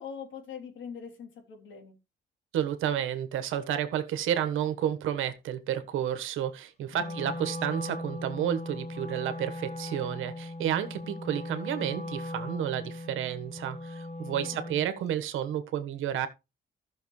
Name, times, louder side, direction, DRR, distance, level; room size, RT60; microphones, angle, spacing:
voice 1, 0.0-2.0 6.9-7.4 14.4-14.6, left 6 dB, 75° left, 3.3 m, -43 dB
voice 2, 2.5-16.3, right 10 dB, 85° right, 1.4 m, -31 dB
Wind instrument woodwind instrument, 6.9-14.9, left 2 dB, 30° left, 1.6 m, -38 dB
14.0 x 6.5 x 3.2 m
cardioid pair, 90°, 20 cm